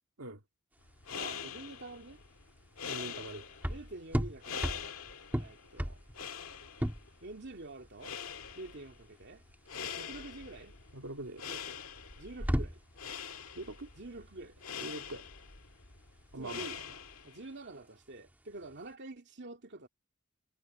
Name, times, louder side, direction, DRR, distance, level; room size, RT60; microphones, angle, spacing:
sound 1, 0.7-18.9, equal, 10° right, 1.6 m, -39 dB
sound 2, 0.8-17.5, left 7 dB, 80° left, 2.0 m, -45 dB
voice 1, 1.1-2.2 3.7-4.8 5.4-6.0 7.2-8.2 8.6-9.4 10.0-10.8 11.5-11.8 12.2-12.8 14.0-14.7 16.4-16.8 17.2-19.9, right 2 dB, 55° right, 2.5 m, -47 dB
voice 2, 2.9-3.4 10.9-11.4 13.5-13.9 14.8-15.3 16.3-16.7, right 2 dB, 85° right, 2.1 m, -42 dB
head